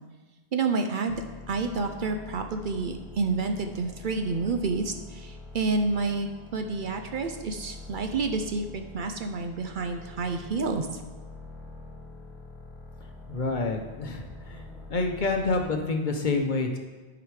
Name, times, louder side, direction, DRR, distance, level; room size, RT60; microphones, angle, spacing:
voice 1, 0.5-11.0, right 4 dB, 60° right, 5 dB, 0.7 m, -29 dB
sound 1, 1.1-15.8, left 2 dB, ahead, 1.1 m, -45 dB
voice 2, 13.3-14.6 14.9-16.8, left 3 dB, 50° left, 3 dB, 0.9 m, -28 dB
11.5 x 5.0 x 4.8 m, 1.3 s
omnidirectional pair, 1.1 m